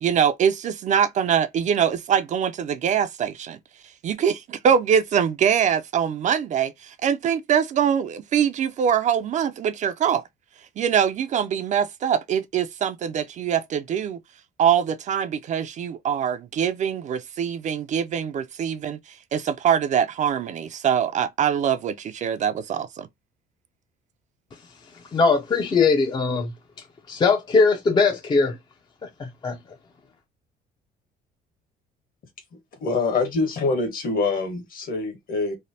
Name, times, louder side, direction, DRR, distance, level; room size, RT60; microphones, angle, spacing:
voice 1, 0.0-3.6 4.0-10.2 10.8-14.2 14.6-23.1, right 8 dB, 45° right, 0.4 m, -23 dB
voice 2, 25.1-26.5 27.1-28.6 29.2-29.6, left 4 dB, 25° left, 0.4 m, -20 dB
voice 3, 32.8-35.5, left 3 dB, 55° left, 1.3 m, -25 dB
3.2 x 2.0 x 2.7 m
cardioid pair, 110°, 17 cm